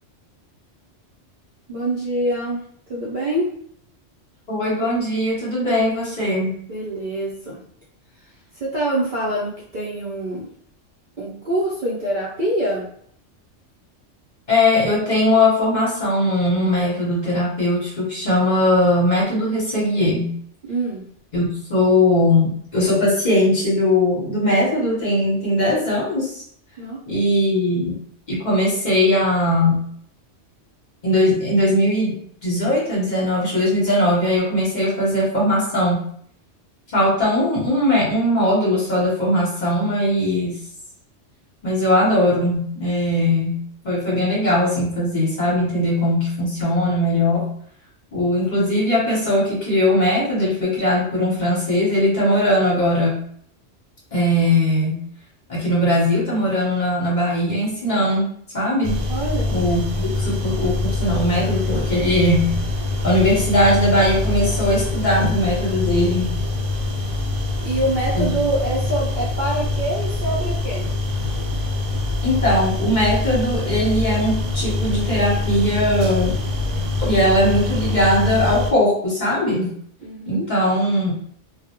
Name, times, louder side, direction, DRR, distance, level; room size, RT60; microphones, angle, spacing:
voice 1, 1.7-2.6 2.9-3.5 6.7-7.6 8.6-10.5 11.2-12.9 20.7-21.0 26.8-27.0 59.1-59.5 67.6-70.9 80.0-80.5, right 1 dB, 55° right, -6 dB, 0.6 m, -25 dB
voice 2, 4.5-6.5 14.5-20.4 21.3-26.4 27.1-28.0 28.3-29.8 31.0-36.0 36.9-40.6 41.6-47.5 48.1-53.2 54.1-55.0 55.5-58.3 58.5-59.0 59.5-62.6 63.0-66.3 68.1-68.3 72.2-76.4 77.0-79.7 80.3-81.1, left 1 dB, 45° left, -6 dB, 0.8 m, -20 dB
sound 1, 58.8-78.7, left 2 dB, 80° right, 0.9 m, -24 dB
2.3 x 2.0 x 2.8 m, 0.63 s
omnidirectional pair, 1.2 m